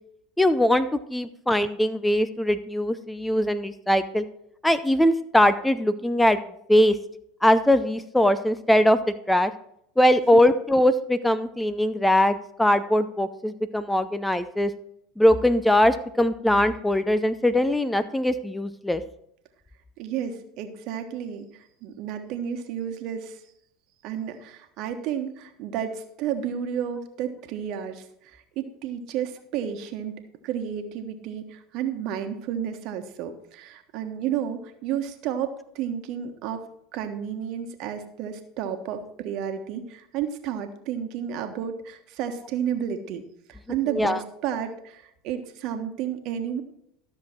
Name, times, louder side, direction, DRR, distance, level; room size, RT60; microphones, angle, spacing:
voice 1, 0.4-4.2 4.6-6.4 6.7-7.0 7.4-9.0 9.3-9.5 10.0-14.7 15.2-19.0 43.9-44.2, left 1 dB, 5° left, 13 dB, 0.6 m, -21 dB
voice 2, 20.0-23.4 24.0-30.1 30.4-36.6 36.9-43.2 43.5-46.6, right 9 dB, 55° right, 7 dB, 1.3 m, -32 dB
13.0 x 6.8 x 4.4 m, 0.73 s
hypercardioid pair, 80°, 0 cm